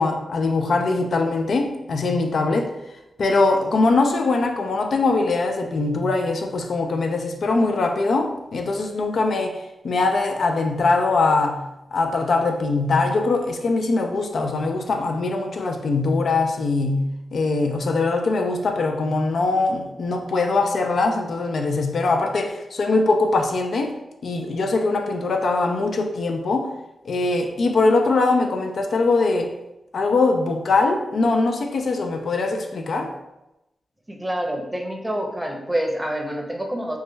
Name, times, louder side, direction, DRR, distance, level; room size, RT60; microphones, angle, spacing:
voice 1, 0.0-2.7 3.2-24.0 24.2-26.7 27.0-29.6 29.9-33.1, left 3 dB, 70° left, 0.3 m, -22 dB
voice 2, 34.1-37.0, right 1 dB, 15° right, 0.7 m, -27 dB
3.2 x 2.2 x 3.1 m
cardioid pair, 45°, 0 cm